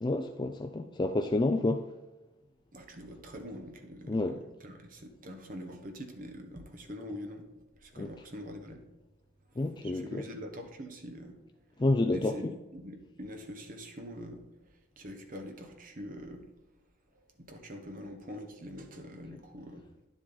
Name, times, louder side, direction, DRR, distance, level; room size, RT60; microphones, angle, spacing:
voice 1, 0.0-1.9 4.1-4.4 8.0-8.1 9.6-10.2 11.8-12.5, left 2 dB, 25° left, 5 dB, 0.4 m, -29 dB
voice 2, 2.7-7.5 7.8-8.8 9.8-11.4 12.1-14.7 15.0-16.4 17.4-19.8, equal, 50° right, 4 dB, 1.3 m, -44 dB
10.0 x 7.4 x 4.0 m, 1.1 s
head